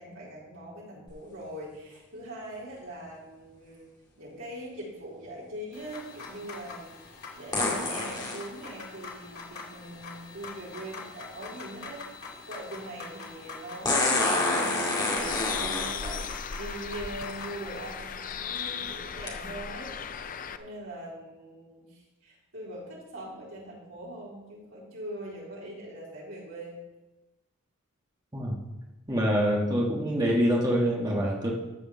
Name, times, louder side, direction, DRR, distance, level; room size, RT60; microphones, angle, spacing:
voice 1, 0.0-3.9 4.2-12.2 12.5-19.9 20.6-26.8, right 1 dB, 70° right, -5 dB, 4.0 m, -42 dB
sound 1, 1.1-1.2 7.5-8.4 10.4-10.5 13.8-16.3 17.3-17.4 18.0-18.3 19.3-19.4, left 2 dB, 20° left, 2.2 m, -27 dB
sound 2, 5.7-17.9, left 4 dB, 80° left, 2.7 m, -44 dB
Bird, 15.2-20.6, left 7 dB, 40° left, 0.5 m, -37 dB
voice 2, 29.1-31.5, equal, 20° right, -3 dB, 1.6 m, -25 dB
13.0 x 5.0 x 7.1 m, 1.1 s
head